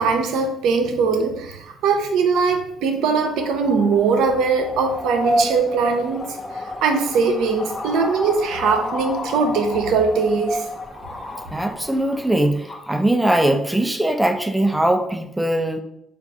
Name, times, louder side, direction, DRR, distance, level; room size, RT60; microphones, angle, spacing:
voice 1, 0.0-10.7, right 5 dB, 75° right, 4 dB, 0.7 m, -21 dB
sound 1, 3.2-12.9, left 1 dB, 25° left, 0.8 m, -30 dB
voice 2, 11.5-15.8, right 1 dB, 10° right, 7 dB, 0.6 m, -20 dB
4.0 x 2.6 x 4.7 m, 0.76 s
supercardioid pair, 65°, 0 cm